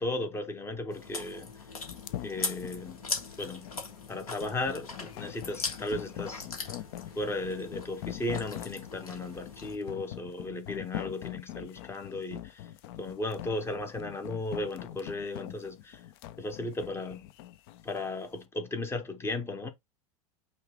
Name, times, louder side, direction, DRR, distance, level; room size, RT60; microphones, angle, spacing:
voice 1, 0.0-1.5 2.2-3.0 3.4-3.7 4.1-6.5 7.2-12.7 13.0-16.0 16.4-17.3 17.8-19.7, left 2 dB, 15° left, 0.8 m, -35 dB
Chewing mastication, 0.9-9.8, left 4 dB, 70° left, 1.3 m, -40 dB
sound 1, 1.9-18.1, left 13 dB, 40° left, 0.4 m, -43 dB
5.4 x 2.3 x 3.6 m
figure-of-eight pair, 90°, 19 cm